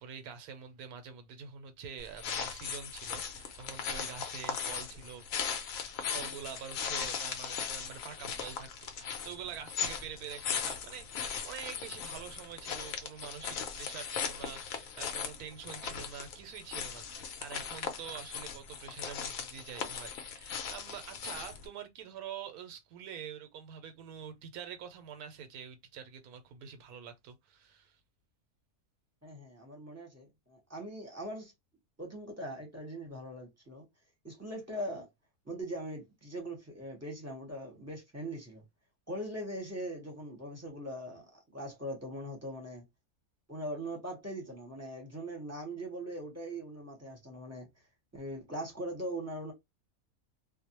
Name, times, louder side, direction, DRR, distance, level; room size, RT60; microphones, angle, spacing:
voice 1, 0.0-5.2 6.1-8.7 9.0-28.0, right 8 dB, 90° right, 1.1 m, -46 dB
sound 1, 2.0-21.7, left 7 dB, 70° left, 1.0 m, -38 dB
voice 2, 29.2-31.5 32.0-33.9 34.2-35.1 35.5-38.6 39.1-42.8 43.5-47.7 48.1-49.5, right 1 dB, 15° right, 0.8 m, -41 dB
2.6 x 2.1 x 2.8 m
omnidirectional pair, 1.5 m